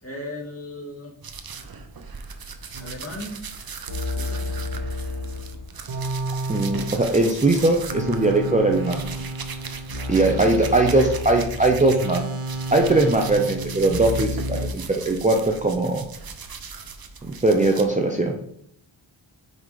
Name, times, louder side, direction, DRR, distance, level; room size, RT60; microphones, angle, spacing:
voice 1, 0.0-1.1 2.8-3.4 4.0-4.5 6.9-7.3 10.2-11.1, left 1 dB, 30° left, -2 dB, 2.2 m, -37 dB
sound 1, 1.2-12.2 12.5-17.9, right 5 dB, 50° right, 0.7 m, -38 dB
sound 2, 2.7-3.1 3.9-7.3 7.9-14.7, equal, 90° right, 1.2 m, -31 dB
voice 2, 6.5-9.0 10.1-12.2 12.7-16.1 17.4-18.4, right 2 dB, 15° right, 1 dB, 0.7 m, -20 dB
5.1 x 3.9 x 4.8 m, 0.67 s
cardioid pair, 50°, 47 cm